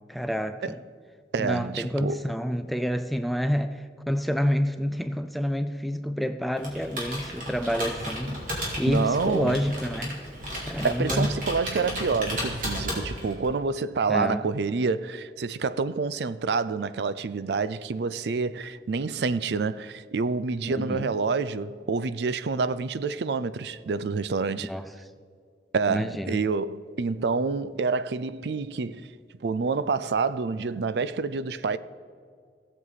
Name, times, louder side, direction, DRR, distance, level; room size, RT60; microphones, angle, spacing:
voice 1, 0.1-0.8 1.4-8.4 8.8-10.2 10.7-11.3 14.1-14.4 20.8-21.1 24.6-24.9 25.9-26.4, equal, ahead, 0.3 m, -28 dB
voice 2, 1.3-2.2 8.9-9.6 10.8-24.7 25.7-29.1 29.4-31.8, right 4 dB, 70° right, 0.4 m, -28 dB
Computer keyboard, 6.6-13.4, equal, 50° right, 2.7 m, -34 dB
16.5 x 7.4 x 4.0 m
head